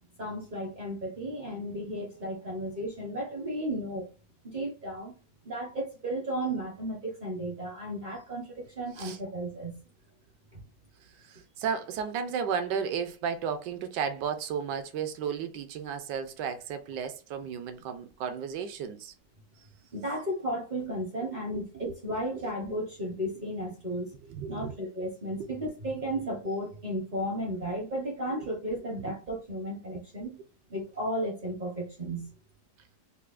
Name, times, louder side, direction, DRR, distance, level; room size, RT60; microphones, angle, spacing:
voice 1, 0.2-4.0 4.4-5.1 5.4-9.8 10.5-10.6 19.9-24.1 24.5-30.4 30.7-32.3, right 1 dB, 45° right, 0.6 m, -34 dB
voice 2, 11.2-19.1 21.5-21.9 24.3-24.7 28.4-28.5, right 7 dB, 70° right, 1.1 m, -34 dB
5.6 x 2.0 x 2.4 m
omnidirectional pair, 2.1 m